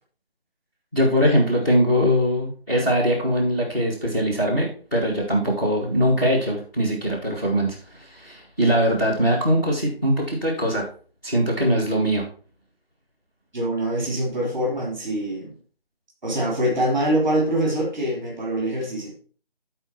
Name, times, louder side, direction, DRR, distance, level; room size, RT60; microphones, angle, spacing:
voice 1, 0.9-10.9 11.2-12.2, equal, 20° left, -1 dB, 2.0 m, -21 dB
voice 2, 13.5-15.5 16.2-19.2, right 1 dB, 5° right, -2 dB, 2.7 m, -24 dB
13.0 x 4.5 x 4.4 m, 0.41 s
figure-of-eight pair, 170°, 30 cm